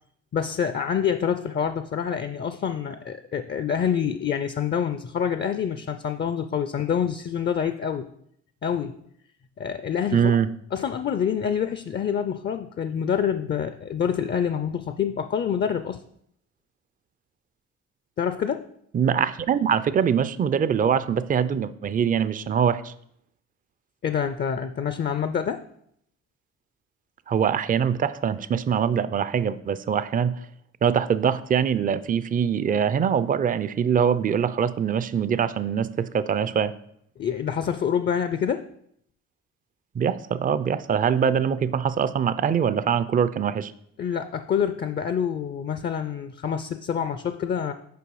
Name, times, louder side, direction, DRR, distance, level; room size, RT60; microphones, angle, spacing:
voice 1, 0.3-8.1 8.6-9.0 9.6-10.2 10.7-16.0 18.2-18.7 24.0-25.6 37.2-38.6 44.0-47.7, left 8 dB, 35° left, 10 dB, 0.4 m, -26 dB
voice 2, 10.1-10.5 18.9-22.9 27.3-30.4 30.8-36.7 40.0-43.7, right 7 dB, 30° right, 15 dB, 0.4 m, -23 dB
6.8 x 4.7 x 4.7 m, 0.69 s
cardioid pair, 90°, 30 cm